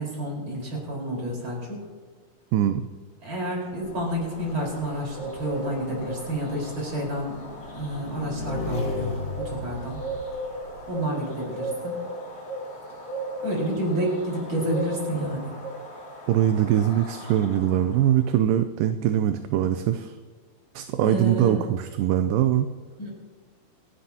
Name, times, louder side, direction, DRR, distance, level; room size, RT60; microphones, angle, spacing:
voice 1, 0.0-1.8 3.2-10.0 10.9-12.1 13.4-15.5 21.0-21.7 23.0-23.1, right 1 dB, 35° right, -2 dB, 5.1 m, -30 dB
voice 2, 2.5-2.8 16.3-20.1 20.8-22.7, right 11 dB, 80° right, 9 dB, 2.2 m, -22 dB
eagle-owl, 3.6-18.1, right 1 dB, 30° left, 2.7 m, -37 dB
Motorcycle / Engine, 3.8-10.9, left 2 dB, 50° left, 1.5 m, -36 dB
27.5 x 11.5 x 2.9 m, 1.5 s
omnidirectional pair, 4.1 m